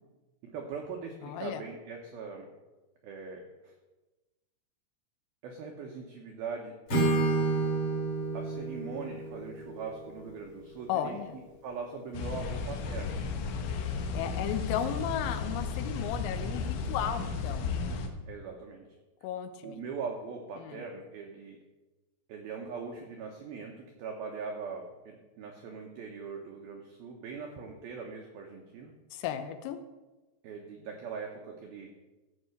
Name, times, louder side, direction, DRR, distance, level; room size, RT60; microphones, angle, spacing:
voice 1, 0.4-2.5 3.0-3.7 5.4-6.7 7.1-7.4 8.3-13.2 17.5-17.6 18.3-18.9 19.6-21.6 22.3-28.9 30.4-31.9, right 5 dB, 85° right, 2 dB, 2.1 m, -41 dB
voice 2, 1.2-1.6 10.9-11.4 14.1-17.7 19.2-19.8 20.6-20.8 29.1-29.8, left 9 dB, 90° left, 9 dB, 3.6 m, -34 dB
Acoustic guitar / Strum, 6.9-10.9, right 3 dB, 35° left, 2.8 m, -30 dB
sound 1, 12.1-18.1, left 4 dB, 70° left, 3.2 m, -34 dB
15.5 x 5.7 x 6.6 m, 1.1 s
omnidirectional pair, 5.9 m